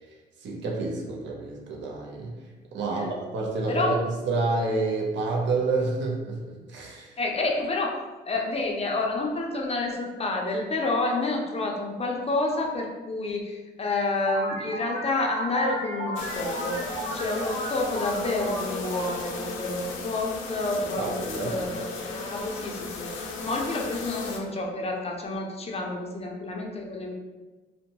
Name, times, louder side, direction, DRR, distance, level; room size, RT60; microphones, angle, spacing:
voice 1, 0.4-2.4 2.7-7.2 20.8-21.5, right 3 dB, 65° right, 0 dB, 0.6 m, -29 dB
voice 2, 2.8-3.1 3.7-3.9 7.2-16.8 17.1-21.2 21.4-27.1, left 2 dB, 30° left, 0 dB, 0.5 m, -29 dB
sound 1, 14.3-20.5, right 1 dB, 50° right, 1.1 m, -35 dB
sound 2, 16.2-24.4, left 3 dB, 90° left, 0.5 m, -36 dB
2.6 x 2.1 x 2.8 m, 1.2 s
cardioid pair, 90°, 20 cm